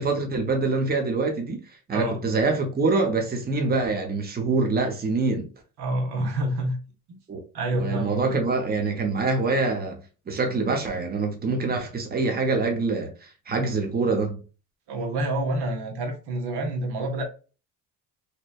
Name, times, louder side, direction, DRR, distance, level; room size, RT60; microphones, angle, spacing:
voice 1, 0.0-1.6 1.9-5.5 7.3-7.4 7.7-10.0 10.3-14.4, right 3 dB, 25° right, 0.7 m, -25 dB
voice 2, 5.8-6.8 7.1-7.2 7.5-8.4 14.9-17.2, right 1 dB, 80° right, 0.9 m, -28 dB
2.9 x 2.2 x 2.4 m
cardioid pair, 90°, 39 cm